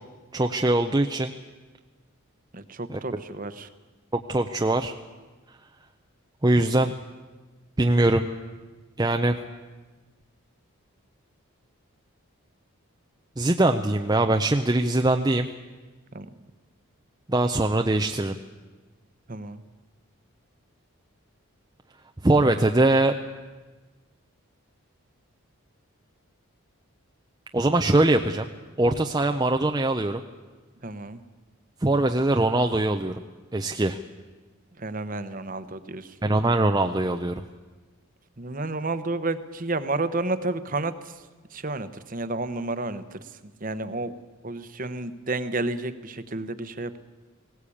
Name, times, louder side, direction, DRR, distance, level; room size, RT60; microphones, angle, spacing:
voice 1, 0.3-1.3 2.9-3.0 4.1-4.9 6.4-6.9 7.8-8.3 9.0-9.4 13.4-15.5 17.3-18.3 22.2-23.2 27.5-28.5 28.8-30.2 31.8-33.1 33.5-34.0 36.2-37.4, right 2 dB, 20° right, 5 dB, 0.6 m, -22 dB
voice 2, 2.5-3.7 16.1-16.3 19.3-19.6 30.8-31.2 34.8-36.2 38.4-41.2 41.5-43.3 43.6-44.1 44.4-47.0, right 2 dB, 40° right, 11 dB, 1.0 m, -31 dB
19.5 x 18.0 x 8.6 m, 1.3 s
head